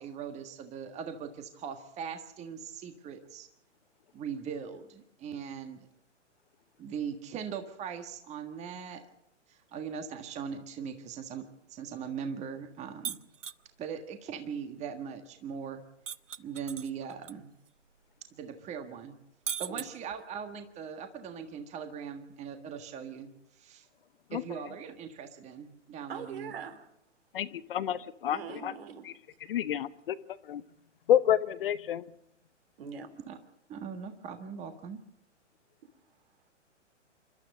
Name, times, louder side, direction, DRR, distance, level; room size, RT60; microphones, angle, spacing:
voice 1, 0.0-3.5 4.1-5.9 6.8-9.0 9.5-13.2 13.8-15.8 16.4-17.5 18.3-19.2 19.6-23.9 24.3-26.5 33.3-33.4 33.7-35.0, right 7 dB, 20° right, 7 dB, 1.6 m, -40 dB
sound 1, 13.0-13.6 16.1-17.3 17.7-17.8 19.5-20.4, right 8 dB, 75° right, 0.9 m, -37 dB
voice 2, 26.1-26.9 28.3-29.1 32.8-33.1, right 7 dB, 50° right, 8 dB, 3.5 m, -42 dB
voice 3, 27.3-28.7 29.0-29.1 29.5-30.2 30.4-30.6 31.1-32.0, left 10 dB, 50° left, 14 dB, 0.9 m, -29 dB
28.0 x 12.5 x 7.8 m, 0.78 s
figure-of-eight pair, 120°, 37 cm